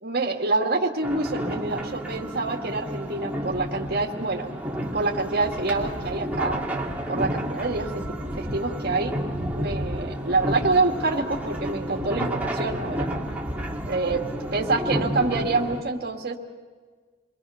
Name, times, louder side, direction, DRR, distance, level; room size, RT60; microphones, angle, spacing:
voice 1, 0.0-4.5 4.9-6.6 7.1-7.9 8.4-9.1 9.5-13.1 13.9-14.2 14.5-16.4, right 3 dB, 45° right, 0 dB, 2.2 m, -26 dB
sound 1, 1.0-15.8, equal, 5° right, 2.3 m, -31 dB
30.0 x 22.5 x 5.8 m, 1.5 s
head